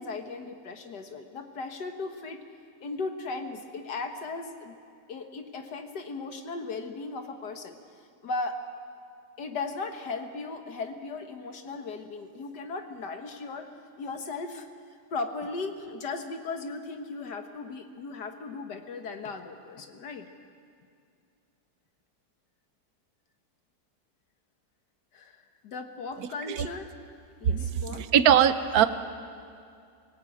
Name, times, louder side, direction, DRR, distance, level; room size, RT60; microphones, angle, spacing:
voice 1, 0.0-2.4 2.8-4.8 5.1-7.8 8.2-8.6 9.4-13.7 14.0-14.7 15.1-20.3 25.1-26.9 27.4-28.1, left 3 dB, 85° left, 6 dB, 2.1 m, -37 dB
voice 2, 26.2-26.7 27.5-28.9, right 9 dB, 70° right, 11 dB, 1.3 m, -22 dB
24.0 x 18.0 x 8.7 m, 2.3 s
omnidirectional pair, 1.7 m